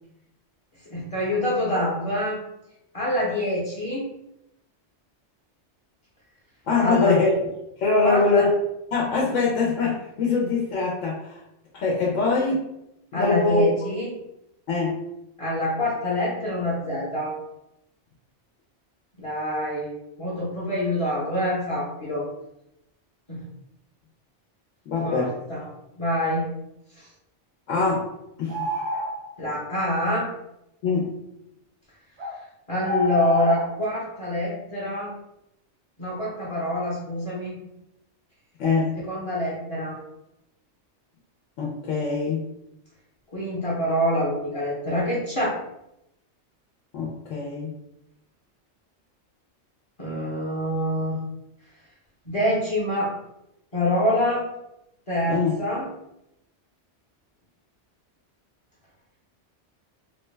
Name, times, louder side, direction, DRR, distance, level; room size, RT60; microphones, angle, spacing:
voice 1, 0.9-2.4 2.9-4.0 6.8-7.2 8.0-8.4 13.1-14.1 15.4-17.4 19.2-19.9 20.2-22.2 23.3-23.4 25.0-25.6 26.0-26.5 29.4-30.3 32.7-35.1 36.0-37.6 38.9-40.0 43.3-45.6 50.0-51.2 52.3-53.1 53.7-54.5 55.1-55.9, left 1 dB, 30° left, -6 dB, 0.7 m, -26 dB
voice 2, 6.7-7.3 7.8-8.5 8.9-11.4 11.7-12.7 13.1-13.6 14.7-15.0 24.9-25.4 27.7-28.1 28.4-28.7 30.8-31.2 38.6-38.9 41.6-42.4 46.9-47.7 55.3-55.5, left 4 dB, 85° left, -3 dB, 1.0 m, -23 dB
sound 1, 28.5-29.4 32.2-32.3 32.8-33.7, left 2 dB, 70° right, 0.9 m, -28 dB
3.1 x 2.1 x 3.2 m, 0.85 s
omnidirectional pair, 1.2 m